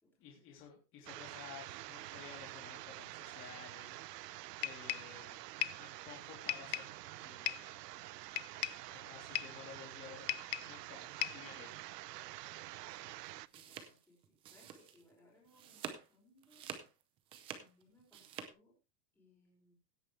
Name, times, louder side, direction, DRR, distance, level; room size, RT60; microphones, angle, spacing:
voice 1, 0.2-5.4 5.7-7.8 8.9-10.3 10.7-11.8, left 8 dB, 25° left, 0 dB, 3.3 m, -54 dB
sound 1, 1.1-13.5, right 17 dB, 85° right, 0.7 m, -48 dB
sound 2, 4.6-5.1 5.6-5.9 6.5-7.0 7.5-7.7 8.4-8.9 9.3-9.6 10.3-10.8 11.2-11.5, left 16 dB, 90° left, 0.8 m, -38 dB
voice 2, 12.5-16.8 17.6-18.8 19.2-19.7, left 1 dB, 5° left, -7 dB, 5.2 m, -68 dB
sound 3, 13.2-15.1 15.5-16.1 16.4-18.5, right 8 dB, 10° right, 0.5 m, -48 dB
16.5 x 8.9 x 3.3 m, 0.27 s
supercardioid pair, 175°, 47 cm